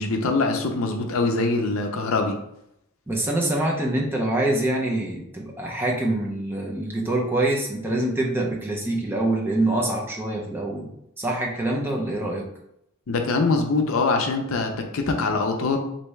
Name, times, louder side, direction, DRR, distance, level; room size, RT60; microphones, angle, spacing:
voice 1, 0.0-2.4 13.1-15.8, left 3 dB, 70° left, 4 dB, 0.5 m, -23 dB
voice 2, 3.1-10.9 11.2-12.5, right 1 dB, 10° right, -2 dB, 0.5 m, -25 dB
3.3 x 2.6 x 3.1 m, 0.78 s
head